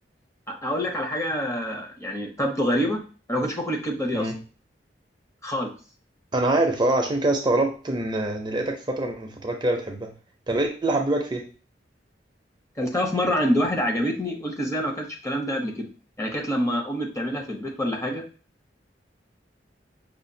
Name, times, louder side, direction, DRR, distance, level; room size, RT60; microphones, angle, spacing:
voice 1, 0.5-3.0 3.3-4.3 5.4-5.7 12.8-15.9 16.2-18.2, equal, 15° left, 1 dB, 0.7 m, -26 dB
voice 2, 6.3-10.1 10.5-11.4, right 2 dB, 25° right, 2 dB, 0.5 m, -24 dB
5.6 x 2.3 x 2.6 m, 0.36 s
head